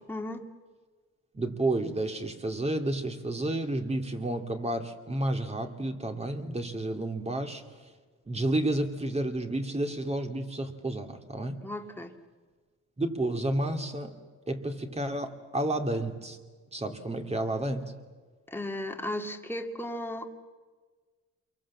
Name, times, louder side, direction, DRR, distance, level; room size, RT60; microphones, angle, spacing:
voice 1, 0.1-0.5 11.6-12.1 18.5-20.3, left 1 dB, 5° left, 4 dB, 2.3 m, -35 dB
voice 2, 1.3-7.9 8.3-11.6 13.0-14.2 14.5-16.4 16.7-17.9, right 1 dB, 20° right, 5 dB, 2.7 m, -31 dB
28.0 x 23.0 x 7.5 m, 1.4 s
cardioid pair, 90°, 30 cm